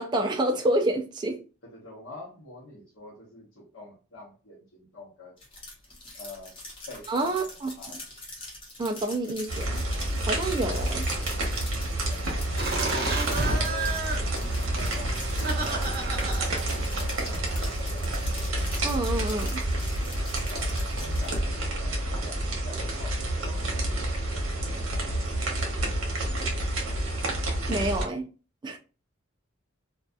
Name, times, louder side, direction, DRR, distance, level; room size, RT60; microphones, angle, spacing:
voice 1, 0.0-1.4 7.1-7.7 8.8-9.8 10.2-11.1 18.8-19.6 27.7-28.3 28.6-28.8, right 1 dB, 20° right, 0.3 m, -28 dB
voice 2, 1.6-5.4 6.1-6.5 6.9-8.0 11.9-18.3 20.4-25.5, left 2 dB, 75° left, 0.9 m, -46 dB
sound 1, 5.4-21.4, left 2 dB, 25° left, 0.9 m, -44 dB
sound 2, 9.5-28.0, right 1 dB, 85° right, 0.9 m, -29 dB
Laughter, 12.6-17.7, right 3 dB, 50° right, 0.8 m, -32 dB
2.6 x 2.3 x 2.2 m
head